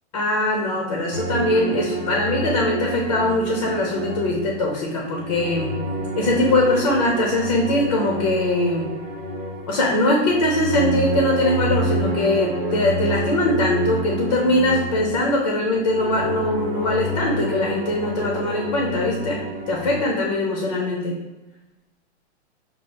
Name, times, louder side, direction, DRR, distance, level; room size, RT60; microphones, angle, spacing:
voice 1, 0.1-5.8 6.1-8.9 9.7-19.4 19.7-21.2, left 1 dB, 30° left, -1 dB, 0.4 m, -21 dB
sound 1, 1.1-4.7 5.0-20.0, right 1 dB, 35° right, 0.7 m, -28 dB
5.6 x 2.3 x 3.2 m, 1.1 s
hypercardioid pair, 165°, 35 cm